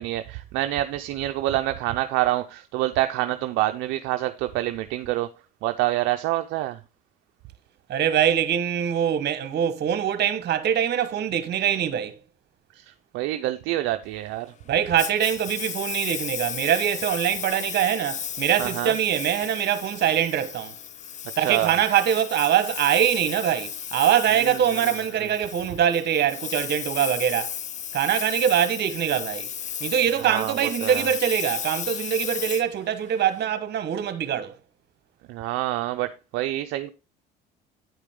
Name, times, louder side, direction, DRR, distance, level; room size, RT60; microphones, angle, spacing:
voice 1, 0.0-5.3 5.6-6.8 12.7-14.5 18.6-18.9 21.4-21.7 24.4-24.6 24.8-24.9 25.2-25.3 30.2-31.1 35.3-36.9, right 15 dB, 75° right, 0.5 m, -27 dB
voice 2, 7.9-12.2 14.7-20.7 21.4-27.5 27.9-29.5 29.8-34.6, right 9 dB, 55° right, 1.2 m, -23 dB
Engine, 15.0-33.4, left 9 dB, 35° left, 0.5 m, -34 dB
9.3 x 5.0 x 3.6 m
supercardioid pair, 80°, 20 cm